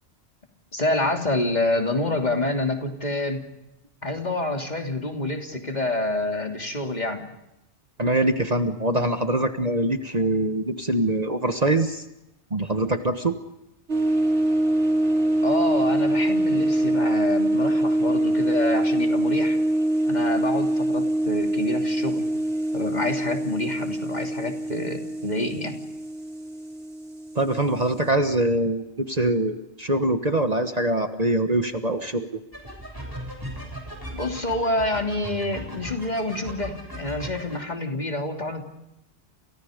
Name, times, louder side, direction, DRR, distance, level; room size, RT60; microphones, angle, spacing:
voice 1, 0.7-3.4 4.0-7.2 15.4-19.6 20.1-22.3 22.7-25.7 34.1-38.6, left 2 dB, 40° left, 3 dB, 3.3 m, -27 dB
voice 2, 8.0-12.0 12.5-13.4 27.3-32.4, right 1 dB, 35° right, 8 dB, 1.4 m, -23 dB
sound 1, 13.9-28.1, right 1 dB, 85° right, 4.0 m, -24 dB
sound 2, 32.5-37.6, right 1 dB, 20° right, 7.3 m, -37 dB
29.5 x 29.5 x 5.2 m, 0.90 s
omnidirectional pair, 1.1 m